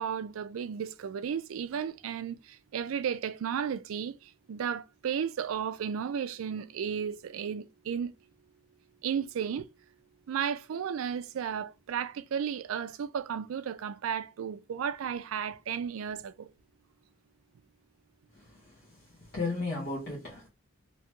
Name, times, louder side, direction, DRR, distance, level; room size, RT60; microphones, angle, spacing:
voice 1, 0.0-8.1 9.0-9.7 10.3-16.5, right 7 dB, 80° right, 0.3 m, -34 dB
voice 2, 18.3-20.5, left 3 dB, 55° left, 1.0 m, -36 dB
2.9 x 2.3 x 2.9 m
head